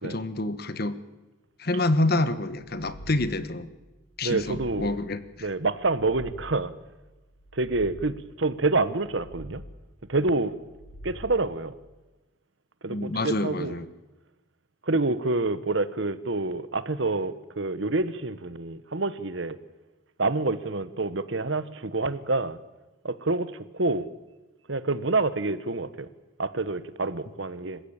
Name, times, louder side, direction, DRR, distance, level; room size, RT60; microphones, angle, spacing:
voice 1, 0.0-1.0 1.6-3.7 4.2-5.5 12.9-13.9, left 2 dB, 50° left, 13 dB, 1.3 m, -27 dB
sound 1, 2.5-3.6 4.1-5.2 5.7-6.8 7.3-8.4 8.9-10.0 10.5-11.6, equal, 65° left, 3.6 m, -46 dB
voice 2, 4.2-5.0 5.4-6.7 7.5-9.6 10.1-10.6 11.0-11.7 12.8-13.8 14.8-19.6 20.2-22.6 23.0-24.1 24.7-26.1 26.4-27.8, right 3 dB, 60° right, 14 dB, 1.2 m, -27 dB
27.0 x 15.5 x 8.9 m, 1.1 s
head